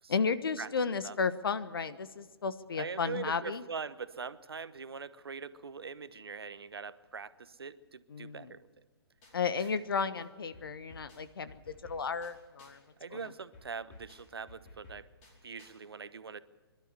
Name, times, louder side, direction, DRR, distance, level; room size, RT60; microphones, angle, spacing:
voice 1, 0.1-3.6 8.1-8.5 9.3-12.8, left 5 dB, 65° left, 12 dB, 1.3 m, -33 dB
voice 2, 2.8-8.7 9.6-9.7 13.0-15.1 15.4-16.4, right 5 dB, 70° right, 15 dB, 1.0 m, -42 dB
sound 1, 9.2-9.9 10.1-12.9 13.1-15.8, left 2 dB, 30° left, 5.1 m, -56 dB
24.0 x 12.0 x 9.6 m, 1.4 s
figure-of-eight pair, 125°, 13 cm